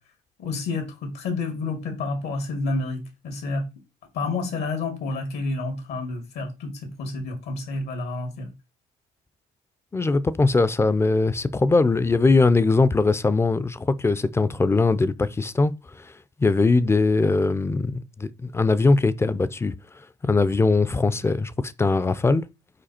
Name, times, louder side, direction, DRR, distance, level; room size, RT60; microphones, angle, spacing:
voice 1, 0.4-3.6 4.1-8.5, left 3 dB, 80° left, 2.1 m, -29 dB
voice 2, 9.9-16.1 16.4-19.7 20.2-22.5, left 3 dB, 15° left, 0.4 m, -21 dB
5.1 x 4.7 x 4.3 m
cardioid pair, 110°, 17 cm